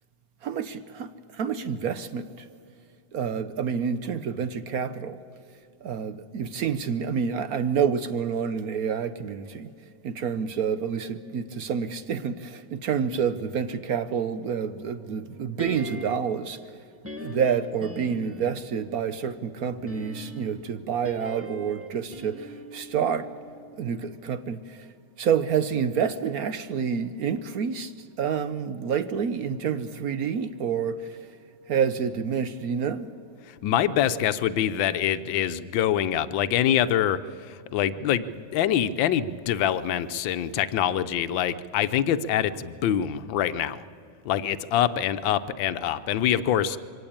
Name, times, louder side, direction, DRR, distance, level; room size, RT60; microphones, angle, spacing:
voice 1, 0.4-2.5 3.1-5.2 5.8-9.7 10.0-16.6 17.2-23.3 23.8-24.9 25.2-27.9 28.2-31.2 31.7-33.1, right 7 dB, 65° right, 1.0 m, -28 dB
sound 1, 15.6-16.4 17.0-18.7 19.7-23.9 24.2-24.3, equal, 10° right, 0.8 m, -40 dB
voice 2, 33.6-37.2 37.5-43.8 44.3-46.8, left 10 dB, 85° left, 1.5 m, -25 dB
23.5 x 17.5 x 8.7 m
omnidirectional pair, 2.0 m